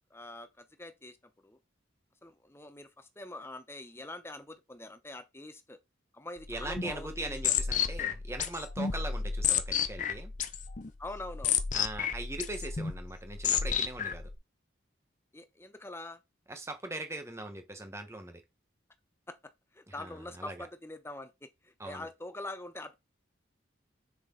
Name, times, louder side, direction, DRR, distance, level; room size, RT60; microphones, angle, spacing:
voice 1, 0.1-1.2 1.4-1.6 2.2-5.8 6.1-7.6 8.9-9.0 11.0-11.6 15.3-16.2 19.3-22.9, left 2 dB, 10° left, 0.9 m, -44 dB
sound 1, 6.4-14.3, left 7 dB, 40° left, 0.7 m, -32 dB
voice 2, 6.5-10.3 11.7-14.3 16.5-18.4 19.9-20.7 21.8-22.1, right 2 dB, 15° right, 1.3 m, -40 dB
6.6 x 6.0 x 3.9 m
head